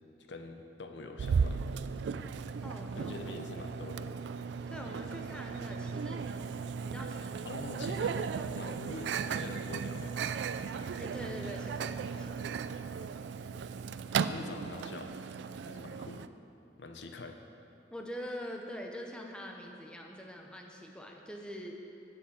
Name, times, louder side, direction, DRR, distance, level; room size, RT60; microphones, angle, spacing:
voice 1, 0.3-1.6 2.9-4.1 7.4-10.2 14.2-15.2 15.6-16.3 16.8-17.4, left 3 dB, 85° left, 5 dB, 0.7 m, -44 dB
Microwave oven, 1.2-16.3, right 6 dB, 80° right, 0.3 m, -36 dB
voice 2, 2.6-3.1 4.7-6.4 6.8-7.5 11.0-12.5 17.9-21.7, equal, 5° left, 1 dB, 0.7 m, -44 dB
7.2 x 7.0 x 7.6 m, 2.7 s
head